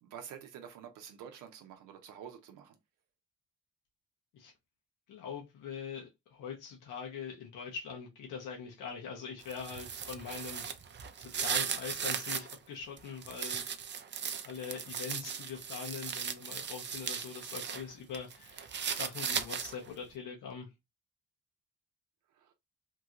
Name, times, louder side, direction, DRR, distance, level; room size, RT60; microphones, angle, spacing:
voice 1, 0.0-2.8 22.3-22.5, right 8 dB, 85° right, 0.6 m, -48 dB
voice 2, 5.1-10.7 11.2-13.7 14.4-20.7, left 6 dB, 90° left, 1.0 m, -43 dB
sound 1, 9.4-12.6 13.0-17.8 18.1-19.9, right 7 dB, 35° right, 0.5 m, -37 dB
2.9 x 2.4 x 2.8 m
cardioid pair, 90°, 30 cm